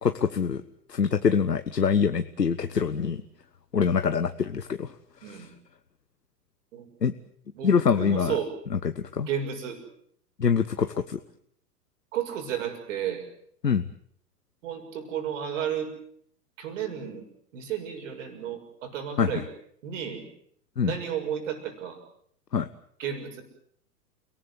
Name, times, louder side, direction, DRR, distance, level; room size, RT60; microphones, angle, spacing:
voice 1, 0.0-0.6 0.9-3.2 3.7-4.9 5.2-5.5 7.0-7.1 7.6-8.4 8.8-9.3 10.4-11.2 13.6-13.8 19.2-19.4 20.8-20.9 22.5-22.7, left 6 dB, 80° left, 10 dB, 1.2 m, -24 dB
voice 2, 5.2-5.5 6.7-6.9 7.5-8.5 9.2-9.8 12.1-13.3 14.6-15.9 16.6-17.3 17.5-19.5 19.8-20.3 20.8-22.0 23.0-23.4, right 8 dB, 50° right, 7 dB, 6.6 m, -32 dB
29.5 x 19.0 x 8.0 m, 0.66 s
figure-of-eight pair, 100°, 48 cm